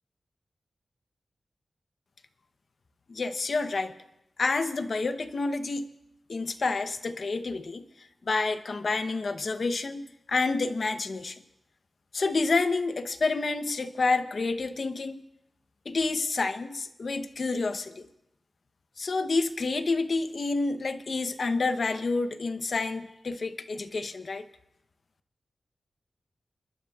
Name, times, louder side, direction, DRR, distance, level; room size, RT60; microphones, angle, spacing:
voice 1, 3.1-3.9 4.4-5.8 6.3-11.4 12.1-15.2 15.9-18.1 19.0-24.5, left 3 dB, 55° left, 10 dB, 0.8 m, -29 dB
29.0 x 12.5 x 2.4 m, 0.83 s
wide cardioid pair, 110°, 0 cm